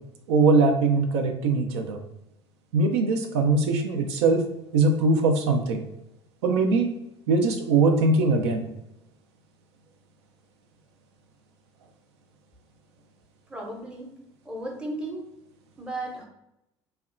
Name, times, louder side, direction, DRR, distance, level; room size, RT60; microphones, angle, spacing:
voice 1, 0.3-2.0 2.7-4.4 4.7-5.8 6.4-6.9 7.3-8.6, right 3 dB, 65° right, 5 dB, 0.4 m, -21 dB
voice 2, 13.5-14.1 14.4-15.3 15.8-16.3, right 1 dB, 5° right, -1 dB, 0.7 m, -34 dB
2.7 x 2.1 x 2.4 m, 0.84 s
figure-of-eight pair, 65°, 15 cm